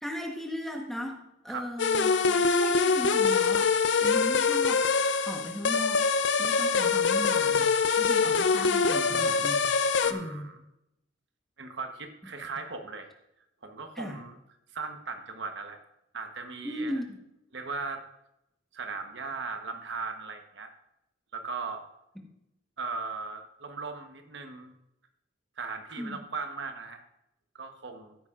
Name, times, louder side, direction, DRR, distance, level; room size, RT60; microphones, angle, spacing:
voice 1, 0.0-3.7 4.0-4.9 5.3-6.1 6.4-7.7 8.0-9.6 10.1-10.5 13.9-14.2 16.6-17.2 26.0-26.2, equal, ahead, 1 dB, 1.2 m, -37 dB
sound 1, 1.8-10.1, left 5 dB, 65° left, 0.6 m, -24 dB
voice 2, 10.0-10.6 11.6-13.1 13.6-14.3 14.7-15.8 16.1-17.0 17.5-18.0 18.7-20.7 21.3-21.8 22.8-24.7 25.6-27.0 27.5-28.2, right 4 dB, 60° right, 5 dB, 1.1 m, -38 dB
15.0 x 8.9 x 2.5 m, 0.84 s
head